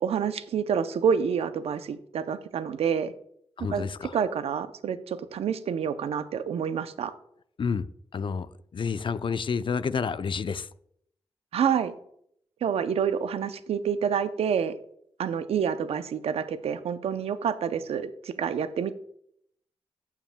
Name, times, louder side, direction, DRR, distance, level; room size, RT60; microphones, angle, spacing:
voice 1, 0.0-3.1 3.6-3.9 4.1-7.1 11.5-11.9 12.6-14.7 15.2-18.9, right 7 dB, 85° right, 12 dB, 0.5 m, -28 dB
voice 2, 3.6-4.2 7.6-7.9 8.1-10.7, left 5 dB, 55° left, 14 dB, 0.5 m, -29 dB
16.0 x 5.8 x 2.2 m, 0.69 s
cardioid pair, 45°, 10 cm